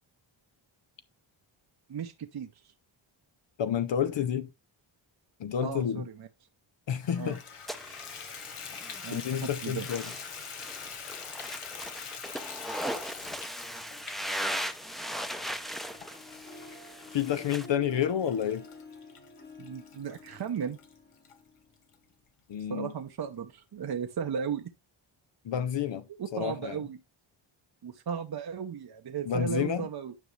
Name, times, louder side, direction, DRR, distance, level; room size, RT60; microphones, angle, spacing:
voice 1, 1.9-2.7 5.6-6.3 7.2-7.4 9.0-9.9 19.6-20.8 22.7-24.7 26.2-27.0 27.8-30.1, right 7 dB, 50° right, 0.8 m, -35 dB
voice 2, 3.6-4.5 5.4-6.0 6.9-7.4 9.1-10.1 17.1-18.7 22.5-22.9 25.4-26.1 26.3-26.8 29.3-29.9, left 9 dB, 60° left, 0.7 m, -29 dB
Water tap faucet / Bathtub (filling or washing), 7.0-21.3 21.9-22.0 22.5-22.6 22.9-23.0, left 6 dB, 85° left, 1.4 m, -45 dB
sound 1, 7.7-17.7, equal, ahead, 0.7 m, -38 dB
Harp, 15.2-22.1, left 2 dB, 20° left, 1.1 m, -51 dB
9.4 x 5.4 x 3.2 m
cardioid pair, 80°, 49 cm